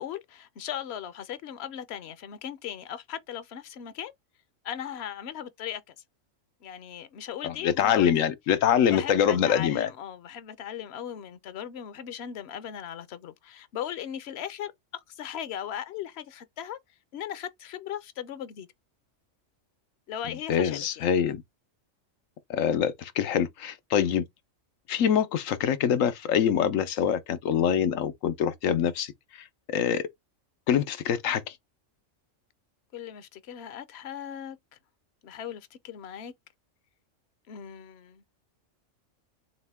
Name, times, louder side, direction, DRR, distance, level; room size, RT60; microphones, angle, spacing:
voice 1, 0.0-4.1 4.6-5.8 6.6-8.3 8.9-16.8 17.1-18.7 20.1-21.1 32.9-34.6 35.2-36.3 37.5-38.2, left 9 dB, 60° left, 0.9 m, -38 dB
voice 2, 7.4-9.9 20.5-21.4 22.5-24.2 24.9-29.1 29.7-30.0 30.7-31.5, left 8 dB, 85° left, 1.1 m, -24 dB
6.4 x 2.2 x 3.5 m
omnidirectional pair, 1.3 m